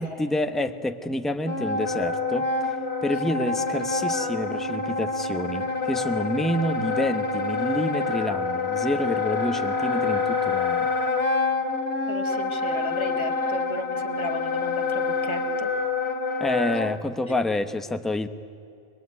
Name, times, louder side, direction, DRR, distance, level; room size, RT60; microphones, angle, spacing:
voice 1, 0.0-2.5 3.0-10.9 16.4-18.3, left 1 dB, ahead, 9 dB, 0.9 m, -28 dB
Wind instrument woodwind instrument, 1.4-16.9, left 3 dB, 60° left, 2.2 m, -27 dB
voice 2, 12.1-15.7 17.3-17.4, equal, 25° left, 6 dB, 1.8 m, -35 dB
25.5 x 20.5 x 9.6 m, 2.7 s
omnidirectional pair, 1.2 m